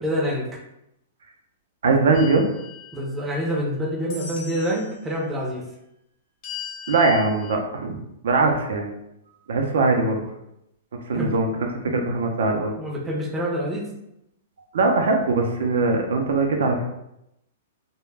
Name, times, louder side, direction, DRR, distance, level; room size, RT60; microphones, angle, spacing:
voice 1, 0.0-0.5 2.9-5.7 11.1-11.3 11.9-12.0 12.8-13.9, equal, 10° right, -4 dB, 0.4 m, -26 dB
voice 2, 1.8-2.4 6.9-8.0 8.2-8.9 9.5-10.2 11.1-12.7 14.7-16.8, right 3 dB, 80° right, 2 dB, 0.5 m, -21 dB
sound 1, 2.1-3.6 4.1-5.0 6.4-7.5, left 8 dB, 35° left, 0.6 m, -38 dB
2.2 x 2.0 x 3.2 m, 0.83 s
hypercardioid pair, 165°, 0 cm